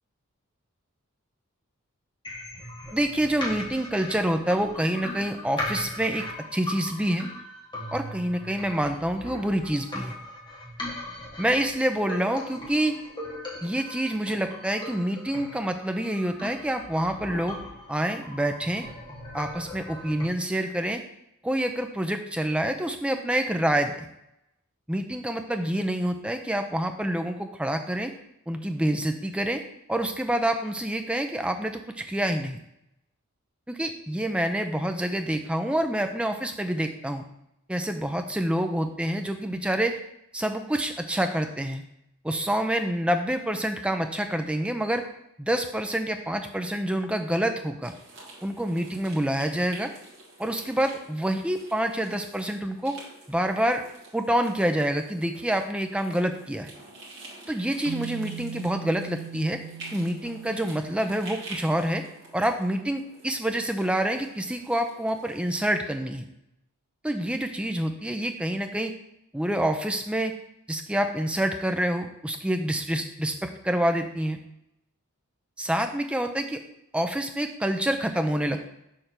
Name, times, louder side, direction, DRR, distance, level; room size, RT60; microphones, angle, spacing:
sound 1, 2.2-20.2, left 1 dB, 20° left, 1.4 m, -39 dB
voice 1, 2.9-6.3 6.5-7.3 7.9-10.1 11.4-12.9 13.6-17.6 17.9-18.8 19.3-21.0 21.4-24.0 24.9-28.1 28.5-29.6 29.9-32.6 33.7-37.2 37.7-40.0 40.3-41.8 42.2-45.0 45.4-47.9 48.4-49.9 50.4-53.0 53.3-53.9 54.1-56.7 57.5-59.6 59.9-62.0 62.3-66.2 67.0-68.9 69.3-70.4 70.7-74.4 75.6-76.6 76.9-78.6, right 1 dB, 5° right, 6 dB, 0.4 m, -27 dB
sound 2, 47.8-65.6, right 2 dB, 50° right, 1.7 m, -48 dB
sound 3, 57.8-62.1, right 9 dB, 70° right, 0.4 m, -41 dB
6.6 x 3.4 x 5.7 m, 0.81 s
head